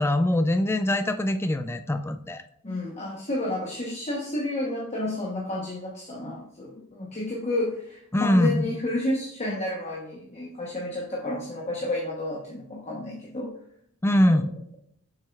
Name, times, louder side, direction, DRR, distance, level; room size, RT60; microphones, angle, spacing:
voice 1, 0.0-2.4 8.1-8.6 14.0-14.5, left 1 dB, 10° left, 8 dB, 0.3 m, -23 dB
voice 2, 2.6-13.6 14.3-14.4, left 1 dB, 30° left, -2 dB, 1.0 m, -31 dB
7.3 x 6.1 x 2.4 m, 0.69 s
head